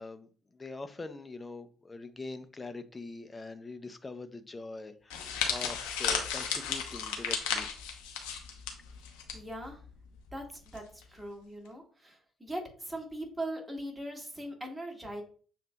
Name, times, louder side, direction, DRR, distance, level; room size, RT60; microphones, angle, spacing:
voice 1, 0.0-7.7, left 3 dB, 25° left, 10 dB, 0.6 m, -43 dB
sound 1, 5.1-9.4 9.6-9.9 10.7-11.0, left 7 dB, 70° left, 0.7 m, -34 dB
voice 2, 9.3-9.8 10.3-15.2, right 1 dB, 15° right, 1 dB, 1.7 m, -40 dB
6.7 x 2.7 x 2.3 m, 0.42 s
figure-of-eight pair, 50°, 0 cm